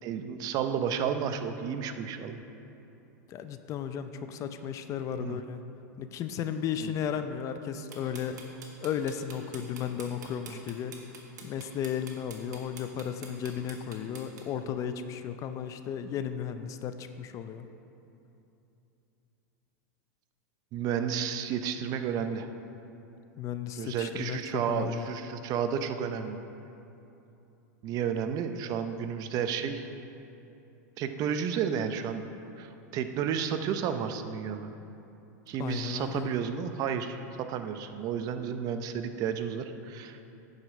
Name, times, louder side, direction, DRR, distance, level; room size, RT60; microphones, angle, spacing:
voice 1, 0.0-2.4 5.2-5.4 6.8-6.9 10.5-10.6 20.7-22.5 23.8-26.4 27.8-29.9 31.0-32.2 32.6-34.7 35.5-40.2, right 7 dB, 40° right, 8 dB, 0.6 m, -32 dB
voice 2, 3.3-5.6 6.0-8.4 8.8-11.0 11.4-17.7 23.4-25.1 35.6-36.3, left 8 dB, 35° left, 9 dB, 0.5 m, -34 dB
sound 1, 7.9-14.4, right 5 dB, 85° right, 1.5 m, -46 dB
9.2 x 5.1 x 6.2 m, 2.9 s
hypercardioid pair, 120°, 9 cm